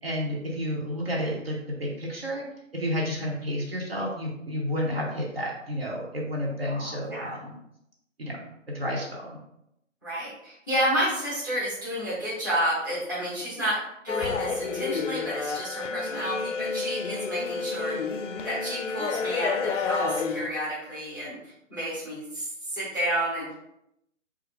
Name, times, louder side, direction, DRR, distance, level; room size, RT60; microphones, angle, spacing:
voice 1, 0.0-2.4 2.7-7.5 8.2-8.4 8.7-9.3, equal, 50° right, -3 dB, 0.8 m, -31 dB
voice 2, 6.7-7.4 10.0-18.0 18.4-21.4 21.7-22.5 22.7-23.5, equal, 15° right, -11 dB, 0.8 m, -30 dB
sound 1, 14.1-20.5, left 5 dB, 70° left, 0.5 m, -30 dB
4.1 x 2.5 x 3.0 m, 0.81 s
hypercardioid pair, 180°, 39 cm